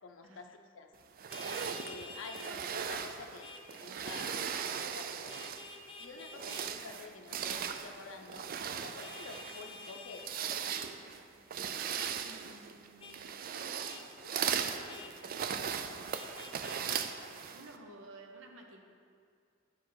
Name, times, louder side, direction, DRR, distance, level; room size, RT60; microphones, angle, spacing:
voice 1, 0.0-0.9 1.8-5.4 6.0-8.5 8.8-10.2, left 4 dB, 85° left, 5 dB, 0.5 m, -49 dB
sound 1, 1.2-5.8 6.2-17.8, right 7 dB, 45° right, 0.4 m, -38 dB
Vehicle horn car horn honking, 1.3-2.5 3.4-3.6 4.0-4.3 5.3-6.7 9.0-10.3 12.0-12.2 13.0-13.2 13.9-14.1 14.9-15.1 16.1-17.1, left 3 dB, 25° left, 0.4 m, -49 dB
voice 2, 2.0-2.6 12.2-16.2 17.5-18.8, right 2 dB, 85° right, 2 dB, 0.8 m, -55 dB
9.4 x 4.8 x 4.6 m, 2.3 s
head